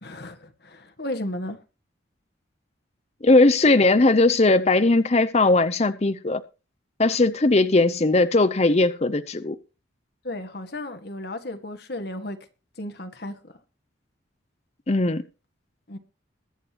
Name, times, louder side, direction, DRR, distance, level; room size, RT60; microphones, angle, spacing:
voice 1, 0.0-1.6 7.0-7.2 10.2-12.4 12.8-13.5 15.9-16.0, left 1 dB, 55° left, 1.8 m, -34 dB
voice 2, 3.2-6.4 7.0-9.6 14.9-15.2, left 2 dB, 35° left, 0.7 m, -19 dB
22.0 x 7.9 x 3.0 m
head